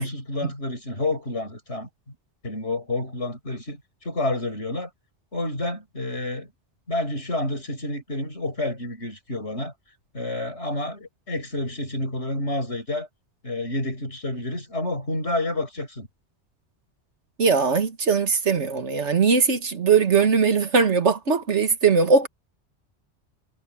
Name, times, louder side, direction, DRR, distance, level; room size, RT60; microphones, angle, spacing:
voice 1, 0.0-2.1 2.4-4.9 5.3-6.5 6.9-9.7 10.1-13.1 13.4-16.1, left 2 dB, 70° left, 6.8 m, -29 dB
voice 2, 17.4-22.3, right 5 dB, 80° right, 2.0 m, -20 dB
omnidirectional pair, 1.2 m